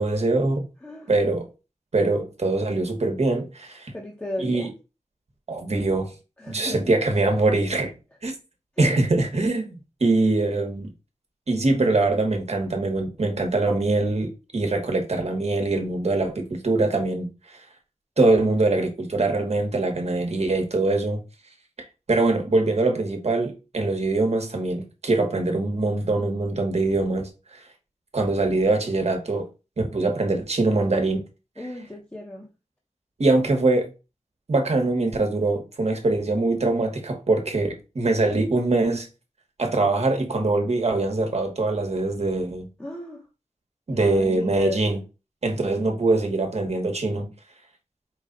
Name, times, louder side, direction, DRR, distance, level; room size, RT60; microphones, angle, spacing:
voice 1, 0.0-0.7 1.1-1.5 1.9-3.9 4.4-4.7 5.5-6.1 6.5-7.9 8.2-8.3 8.8-10.9 11.5-17.3 17.5-17.7 18.2-21.2 22.1-27.6 28.1-29.5 29.8-31.2 33.2-33.9 34.5-39.1 39.6-42.7 43.9-45.0 45.4-47.3, right 2 dB, 60° right, 1.2 m, -23 dB
voice 2, 3.9-4.7 6.4-6.9 8.8-8.9 31.6-32.5 42.8-43.2 43.9-44.8, left 1 dB, 15° left, 1.0 m, -35 dB
5.0 x 2.4 x 3.8 m
wide cardioid pair, 80°, 12 cm